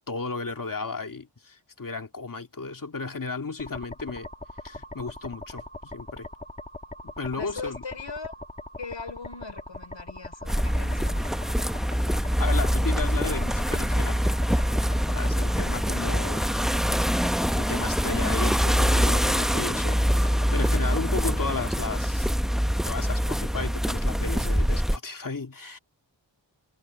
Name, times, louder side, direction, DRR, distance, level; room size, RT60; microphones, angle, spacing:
voice 1, 0.1-4.3 4.6-6.3 7.0-7.8 12.2-14.2 15.1-16.4 17.6-22.3 22.9-25.8, left 4 dB, 45° left, 2.3 m, -34 dB
sound 1, 3.6-21.8, left 2 dB, 15° left, 1.8 m, -41 dB
voice 2, 7.4-8.3 8.8-11.3, left 4 dB, 65° left, 4.7 m, -39 dB
sound 2, 10.5-25.0, equal, ahead, 0.8 m, -24 dB
wide cardioid pair, 95°, 46 cm